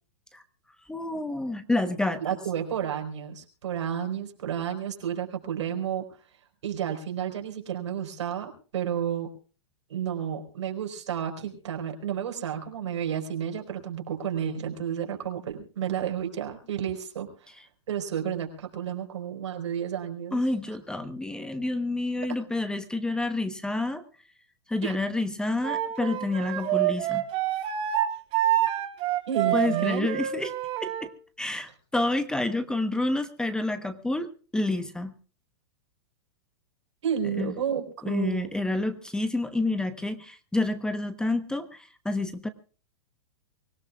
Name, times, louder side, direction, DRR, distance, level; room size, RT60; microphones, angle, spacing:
voice 1, 0.9-2.2 20.3-24.0 24.7-27.2 29.5-30.5 30.8-31.1 31.4-35.1 37.4-37.5 38.0-42.5, left 2 dB, 5° left, 11 dB, 1.0 m, -29 dB
voice 2, 2.2-6.0 6.6-9.3 9.9-17.5 17.9-20.4 22.3-22.4 24.8-25.0 29.3-30.1 37.0-38.5, right 9 dB, 80° right, 4 dB, 4.5 m, -31 dB
Wind instrument woodwind instrument, 25.6-31.1, right 12 dB, 40° right, 3.6 m, -27 dB
24.5 x 17.0 x 2.4 m, 0.38 s
hypercardioid pair, 135°, 15 cm